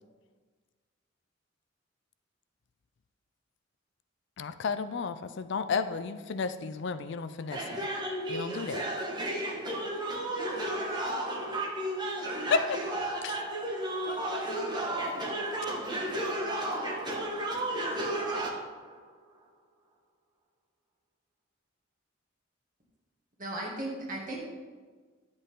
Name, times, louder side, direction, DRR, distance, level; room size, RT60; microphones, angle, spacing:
voice 1, 4.4-7.6 8.3-8.8 12.5-12.6, left 5 dB, 65° left, 0.5 m, -31 dB
voice 2, 7.5-19.5, right 1 dB, 20° right, 1.6 m, -33 dB
voice 3, 23.4-24.4, right 1 dB, 45° right, 2.3 m, -36 dB
10.0 x 7.8 x 3.7 m
head